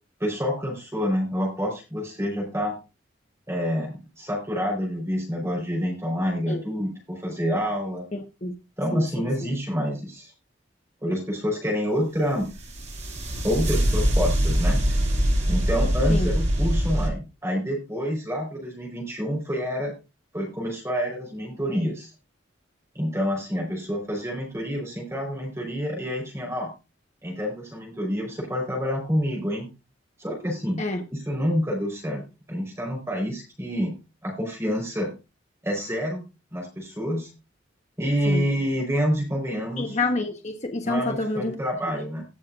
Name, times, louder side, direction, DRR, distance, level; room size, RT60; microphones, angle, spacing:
voice 1, 0.2-2.8 3.5-8.1 8.8-10.3 11.0-12.5 13.4-14.8 15.5-19.9 20.3-22.1 22.9-26.7 27.2-29.7 30.2-30.8 31.1-32.2 32.5-33.9 34.2-35.1 35.6-37.3 38.0-40.0 40.8-42.2, equal, 15° right, -1 dB, 4.4 m, -27 dB
voice 2, 8.1-8.5 8.9-9.5 16.1-16.3 30.8-31.0 38.3-38.4 39.8-41.5, left 2 dB, 35° left, 3 dB, 1.2 m, -28 dB
sound 1, 12.5-17.1, equal, 35° right, 2.5 m, -23 dB
18.5 x 6.5 x 2.5 m, 0.28 s
head